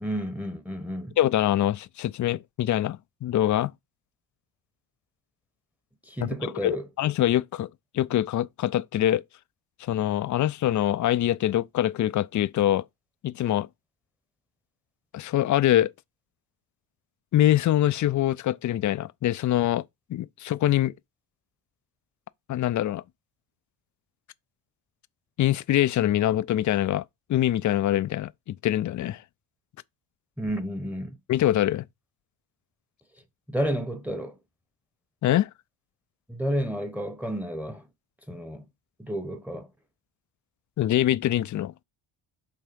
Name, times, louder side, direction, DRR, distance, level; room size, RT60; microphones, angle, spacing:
voice 1, 0.0-1.2 6.1-6.9 30.4-31.2 33.5-34.4 36.3-37.8 38.3-38.7 39.0-39.7, equal, 5° right, 0.9 m, -31 dB
voice 2, 1.2-3.7 6.2-7.7 7.9-9.2 9.8-12.8 13.2-13.7 15.1-15.9 17.3-19.8 20.1-20.9 22.5-23.0 25.4-27.0 27.3-29.2 31.3-31.9 35.2-35.5 40.8-41.7, left 12 dB, 40° left, 0.4 m, -24 dB
5.8 x 3.5 x 5.2 m
cardioid pair, 85°, 49 cm